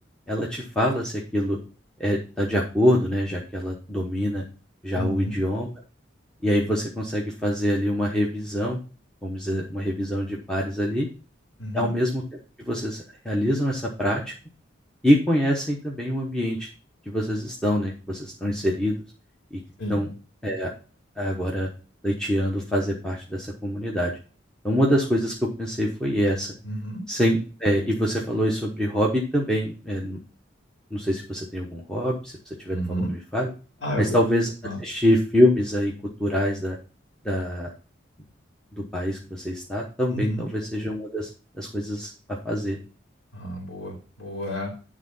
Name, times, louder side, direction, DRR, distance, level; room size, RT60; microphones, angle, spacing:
voice 1, 0.3-1.6 2.0-4.4 4.8-5.7 6.4-8.8 9.2-11.1 11.7-12.2 12.6-14.3 15.0-16.7 17.1-19.0 19.5-19.6 19.9-20.1 20.4-20.7 21.2-21.7 22.0-24.1 24.6-26.5 27.1-30.2 30.9-32.3 32.6-33.5 34.0-34.5 34.8-35.9 36.2-36.8 37.2-37.7 38.7-41.3 41.5-42.1 42.4-42.8, equal, 5° left, -2 dB, 1.0 m, -25 dB
voice 2, 4.9-5.4 11.6-11.9 19.8-20.0 26.6-27.0 32.7-33.1 33.8-34.2 34.6-34.8 40.1-40.5 43.3-44.7, equal, 70° left, 0 dB, 2.6 m, -31 dB
10.0 x 3.7 x 5.5 m, 0.36 s
head